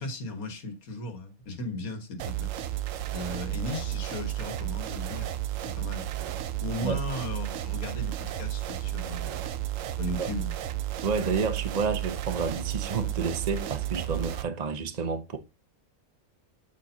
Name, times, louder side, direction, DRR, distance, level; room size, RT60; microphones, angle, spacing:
voice 1, 0.0-2.5 3.1-5.3 5.6-6.1 6.6-9.4 10.0-10.5, left 1 dB, 80° left, 1.9 m, -36 dB
sound 1, 2.2-14.4, right 13 dB, 70° right, 0.9 m, -33 dB
voice 2, 11.0-15.4, right 5 dB, 40° right, 0.7 m, -30 dB
8.5 x 4.3 x 2.7 m
omnidirectional pair, 1.5 m